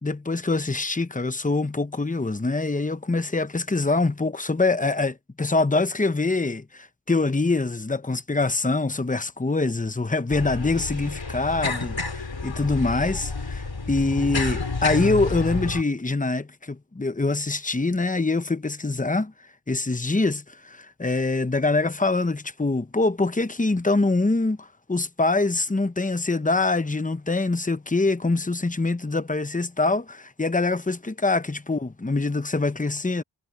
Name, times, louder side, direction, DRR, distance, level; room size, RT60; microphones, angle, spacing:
voice 1, 0.0-13.3 13.9-19.3 19.7-33.2, left 3 dB, 20° left, 0.9 m, -24 dB
sound 1, 10.3-15.8, left 3 dB, 80° left, 4.1 m, -30 dB
wide cardioid pair, 55°, 44 cm